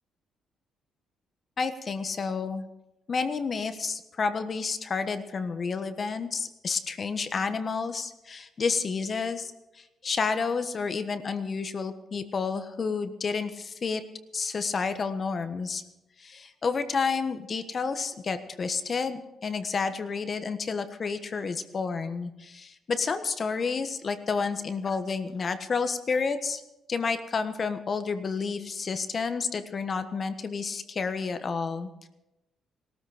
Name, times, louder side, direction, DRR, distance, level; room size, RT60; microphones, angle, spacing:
voice 1, 1.6-2.7 3.1-14.0 14.3-15.8 16.2-26.6 26.9-32.1, left 5 dB, 40° left, 9 dB, 1.3 m, -30 dB
18.0 x 13.5 x 5.0 m, 0.95 s
cardioid pair, 90°, 0 cm